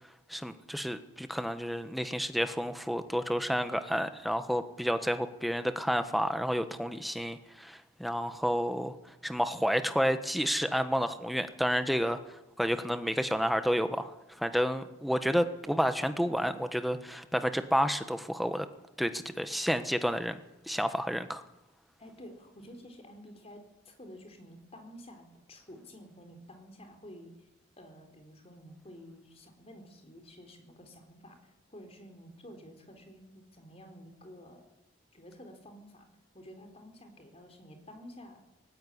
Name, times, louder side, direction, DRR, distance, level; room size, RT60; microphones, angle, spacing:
voice 1, 0.3-8.9 9.2-12.2 12.6-14.1 14.4-18.7 19.0-20.4 20.7-21.4, equal, ahead, 9 dB, 1.2 m, -30 dB
voice 2, 22.0-27.3 27.8-34.6 35.1-36.1 36.3-38.4, equal, 30° left, 5 dB, 4.2 m, -51 dB
19.0 x 16.5 x 10.0 m, 0.90 s
head